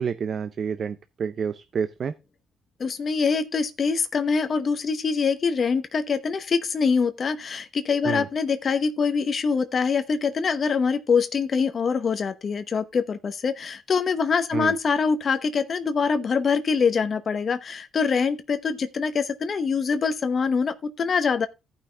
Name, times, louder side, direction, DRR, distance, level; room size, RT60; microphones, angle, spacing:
voice 1, 0.0-2.1 8.0-8.3 14.5-14.7, right 6 dB, 50° right, 0.6 m, -29 dB
voice 2, 2.8-21.5, left 5 dB, 45° left, 0.9 m, -24 dB
14.5 x 5.7 x 3.4 m
cardioid pair, 90°, 0 cm